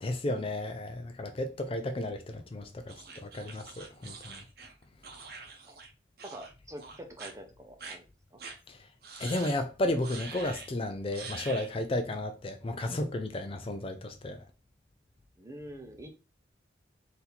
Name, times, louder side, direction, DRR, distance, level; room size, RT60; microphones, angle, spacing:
voice 1, 0.0-4.4 8.7-8.8 9.2-14.4, left 1 dB, 30° left, 0.4 m, -33 dB
sound 1, 2.9-5.9 6.2-6.5 6.8-7.3 7.8-8.0 8.4-8.6 9.0-9.6 10.0-10.7 11.1-11.7, right 4 dB, 60° right, 0.9 m, -45 dB
voice 2, 6.2-8.4 15.4-16.1, equal, 20° right, 0.8 m, -46 dB
4.1 x 2.8 x 4.0 m
head